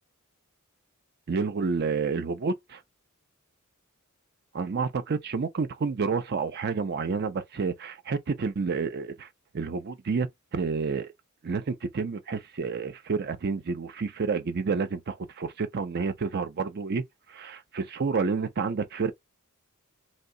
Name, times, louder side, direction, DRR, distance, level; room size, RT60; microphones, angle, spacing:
voice 1, 1.3-2.8 4.5-9.3 9.5-11.1 11.4-17.0 17.3-19.1, right 5 dB, 50° right, 0.5 m, -29 dB
2.7 x 2.1 x 3.7 m
head